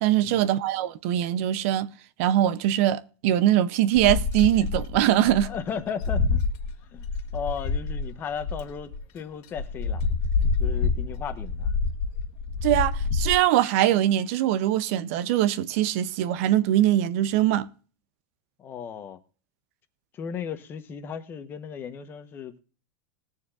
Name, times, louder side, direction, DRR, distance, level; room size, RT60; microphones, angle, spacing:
voice 1, 0.0-1.9 2.2-5.5 12.6-17.7, right 12 dB, 50° right, 0.6 m, -22 dB
sound 1, 4.0-9.0 9.6-13.4, left 4 dB, 45° left, 1.6 m, -27 dB
voice 2, 5.4-6.4 6.9-7.1 7.3-10.0 10.6-11.7 18.6-19.2 20.1-22.6, left 7 dB, 25° left, 1.0 m, -35 dB
20.5 x 7.1 x 2.5 m
supercardioid pair, 165°, 9 cm